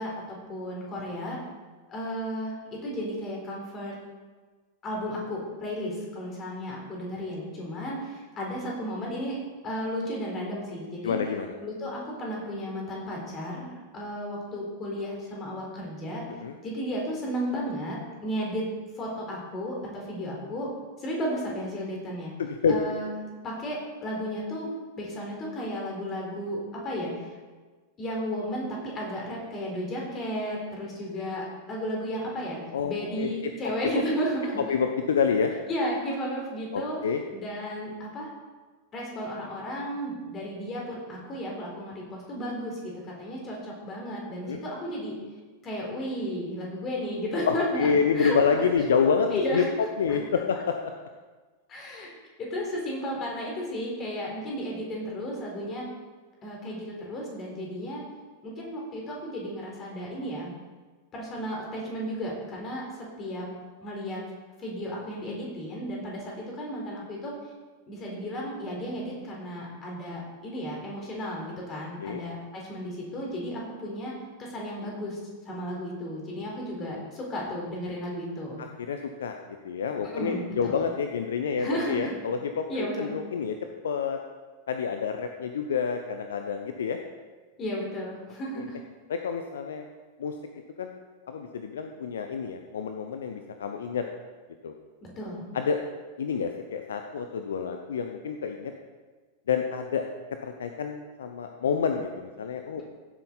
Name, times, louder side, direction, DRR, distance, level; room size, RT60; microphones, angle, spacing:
voice 1, 0.0-1.4 1.9-4.0 4.8-9.4 9.6-11.2 11.6-16.2 16.6-18.7 19.0-20.7 21.0-22.3 22.7-24.7 25.0-27.4 28.0-34.6 35.7-37.0 37.3-38.3 38.9-45.1 45.6-48.6 49.3-49.7 50.1-50.2 51.7-52.1 52.4-55.9 56.4-58.0 58.4-60.5 61.1-63.5 63.8-64.2 64.6-67.3 67.9-75.2 75.5-78.6 80.0-80.9 81.6-82.1 82.7-83.1 87.6-88.8 95.2-95.4, equal, 30° left, -2 dB, 4.3 m, -33 dB
voice 2, 11.0-11.5 16.4-16.6 22.4-22.8 32.7-33.7 34.7-35.5 36.7-37.2 44.4-44.6 47.5-49.6 50.0-50.8 72.0-72.2 78.6-79.4 79.6-83.6 83.8-84.2 84.7-87.0 88.6-88.7 89.1-89.9 90.2-90.3 90.8-91.0 91.3-94.0 94.6-94.7 95.5-95.8 96.2-98.7 99.5-100.0 100.4-102.8, left 6 dB, 65° left, 6 dB, 0.7 m, -28 dB
16.0 x 7.8 x 4.1 m, 1.4 s
figure-of-eight pair, 90°, 0 cm